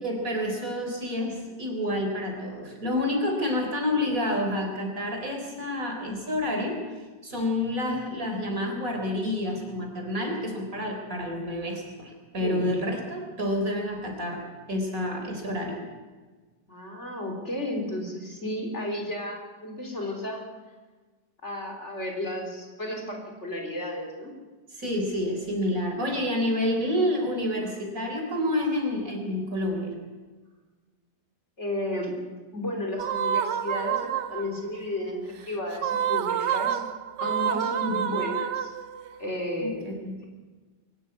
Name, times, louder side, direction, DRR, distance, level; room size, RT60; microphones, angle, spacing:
voice 1, 0.0-6.8 7.2-15.8 24.7-29.9 37.8-38.2 39.6-40.2, left 1 dB, 50° right, 3 dB, 4.3 m, -29 dB
voice 2, 12.4-12.7 16.7-20.4 21.4-24.3 31.6-32.2 32.5-36.8 37.2-38.7 39.2-39.9, left 1 dB, 40° left, 2 dB, 3.9 m, -33 dB
sound 1, 33.0-34.7 35.7-39.1, right 9 dB, 85° right, 1.5 m, -28 dB
23.0 x 12.5 x 9.6 m, 1.3 s
omnidirectional pair, 1.8 m